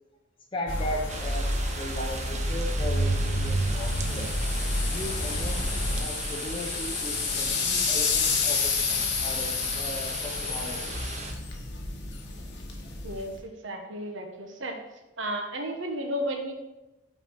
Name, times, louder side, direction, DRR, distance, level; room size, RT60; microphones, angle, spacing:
voice 1, 0.5-4.3 4.9-11.0, left 1 dB, 25° left, 0 dB, 0.7 m, -37 dB
sound 1, 0.7-6.0, equal, 80° left, 1.4 m, -29 dB
sound 2, 1.1-11.3, right 4 dB, 35° right, 0.6 m, -39 dB
sound 3, 3.1-13.4, left 5 dB, 60° left, 1.0 m, -30 dB
voice 2, 13.0-14.8 15.2-16.5, equal, 75° right, 3 dB, 1.0 m, -33 dB
5.8 x 4.5 x 4.5 m, 1.0 s
head